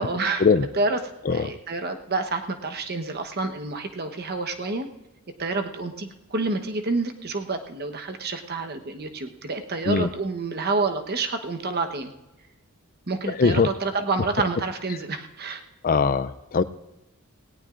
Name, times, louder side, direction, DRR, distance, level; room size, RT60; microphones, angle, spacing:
voice 1, 0.0-0.5 0.7-4.9 5.4-12.1 13.1-15.6, right 3 dB, 45° right, 6 dB, 1.0 m, -28 dB
voice 2, 15.8-16.6, left 5 dB, 40° left, 14 dB, 0.4 m, -21 dB
18.0 x 17.0 x 2.5 m, 1.0 s
head